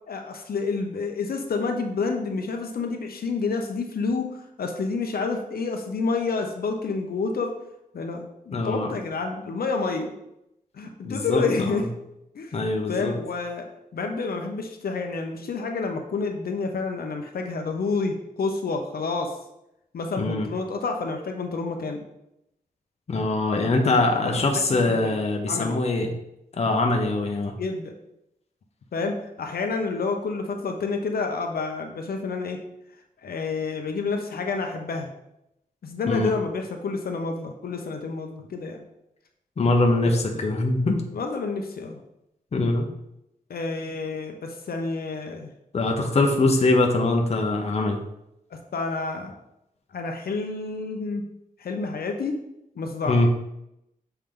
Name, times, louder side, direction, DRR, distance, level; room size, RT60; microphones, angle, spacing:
voice 1, 0.1-7.5 7.9-10.1 10.7-11.9 12.3-12.6 12.9-13.6 13.9-19.3 19.9-22.0 24.1-25.2 25.5-25.7 27.6-27.9 28.9-32.6 33.2-35.1 35.8-38.8 40.3-40.5 41.1-42.0 43.5-45.5 48.7-49.3 49.9-51.3 51.6-52.4 52.8-53.2, left 4 dB, 85° left, 4 dB, 0.8 m, -29 dB
voice 2, 8.5-8.9 11.0-11.8 12.5-13.1 20.2-20.5 23.1-26.1 26.5-27.5 36.1-36.3 39.6-41.0 42.5-42.9 45.7-48.0 53.1-53.3, left 2 dB, 45° left, 2 dB, 0.9 m, -23 dB
7.0 x 4.5 x 3.8 m, 0.82 s
wide cardioid pair, 150°, 15 cm